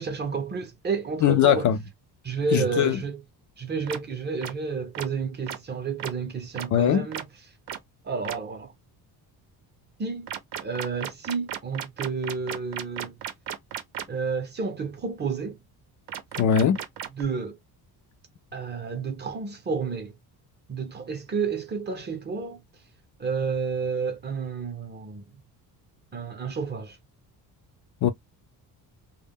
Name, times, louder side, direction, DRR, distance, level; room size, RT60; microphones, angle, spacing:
voice 1, 0.0-1.7 2.2-3.2 3.6-7.3 8.0-8.7 10.0-10.3 10.6-13.2 14.1-15.6 17.1-17.6 18.5-20.1 20.7-22.6 23.2-25.3 26.1-27.0, right 5 dB, 25° right, 0.6 m, -30 dB
voice 2, 1.2-1.8 2.5-3.0 6.7-7.1 16.4-16.8 28.0-28.1, left 9 dB, 50° left, 0.4 m, -20 dB
sound 1, 3.9-4.0 4.4-4.5 4.9-5.1 5.5-5.6 6.0-6.1 6.6-6.7 7.1-7.2 7.7-7.8 8.2-8.4 10.3-14.0 16.1-17.2, right 10 dB, 80° right, 0.7 m, -34 dB
2.1 x 2.1 x 3.4 m
cardioid pair, 145°, 39 cm